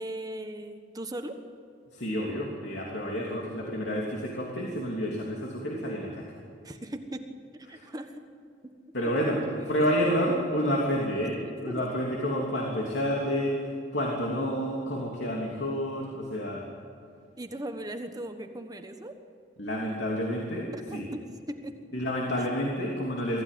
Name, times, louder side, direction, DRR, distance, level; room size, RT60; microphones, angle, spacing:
voice 1, 0.0-1.4 6.6-7.2 7.7-8.2 9.0-9.8 11.7-11.8 12.6-12.7 17.4-19.2 20.7-21.2 21.5-21.8 22.4-22.5, right 1 dB, 20° right, 6 dB, 1.3 m, -38 dB
voice 2, 1.9-6.2 7.7-7.8 8.9-16.6 19.6-21.1 21.9-23.4, equal, 80° left, -2 dB, 3.1 m, -29 dB
24.5 x 15.0 x 9.3 m, 2.4 s
head